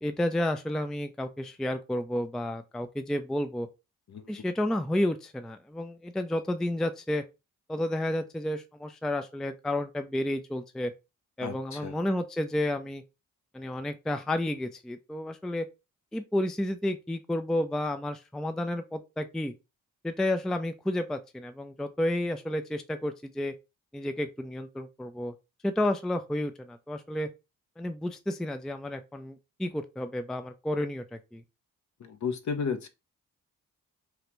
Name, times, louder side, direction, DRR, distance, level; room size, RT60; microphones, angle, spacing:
voice 1, 0.0-3.7 4.3-7.2 7.7-10.9 11.4-13.0 13.5-15.7 16.1-19.5 20.0-23.5 23.9-25.3 25.6-27.3 27.8-31.4, left 1 dB, ahead, 0.4 m, -31 dB
voice 2, 11.4-12.0 32.0-32.9, left 5 dB, 45° left, 0.7 m, -33 dB
3.2 x 2.4 x 3.0 m
hypercardioid pair, 40°, 39 cm